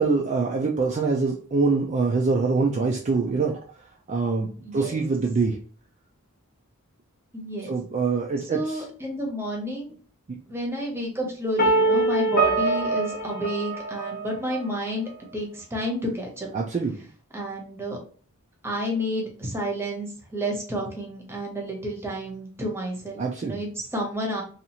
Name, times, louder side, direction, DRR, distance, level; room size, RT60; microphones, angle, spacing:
voice 1, 0.0-3.6 4.1-5.6 7.7-8.8 16.5-16.9 23.2-23.6, right 4 dB, 35° right, 0 dB, 0.3 m, -24 dB
voice 2, 4.6-4.9 7.3-7.7 8.5-9.9 10.5-16.5 17.3-18.0 18.6-24.4, equal, 10° right, 0 dB, 0.8 m, -30 dB
sound 1, 11.6-14.5, right 2 dB, 45° left, 0.7 m, -23 dB
2.7 x 2.4 x 2.8 m, 0.42 s
head